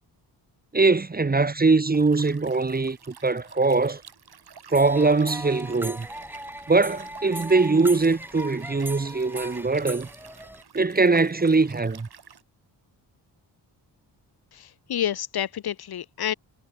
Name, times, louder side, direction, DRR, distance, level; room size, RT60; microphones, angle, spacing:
voice 1, 0.7-4.0 4.7-6.1 6.7-10.1 10.7-12.1, right 3 dB, 20° right, 1.0 m, -22 dB
Liquid, 1.9-12.4, right 7 dB, 60° right, 4.4 m, -50 dB
sound 1, 4.7-10.6, equal, 5° right, 6.5 m, -39 dB
voice 2, 14.5-16.3, left 10 dB, 55° left, 0.8 m, -29 dB
cardioid pair, 65°, 44 cm